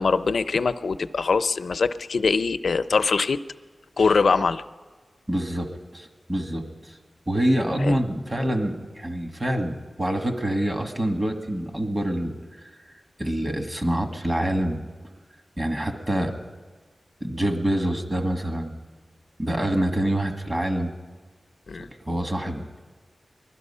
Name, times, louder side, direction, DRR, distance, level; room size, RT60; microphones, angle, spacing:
voice 1, 0.0-3.4 4.0-4.6 7.8-8.0 21.7-21.9, left 4 dB, 80° left, 12 dB, 0.5 m, -23 dB
voice 2, 5.3-7.0 7.3-12.7 13.2-14.8 15.6-16.3 17.2-18.7 19.4-20.9 21.8-22.8, right 1 dB, 25° right, 4 dB, 1.5 m, -26 dB
21.0 x 12.5 x 5.5 m, 1.4 s
wide cardioid pair, 95°, 0 cm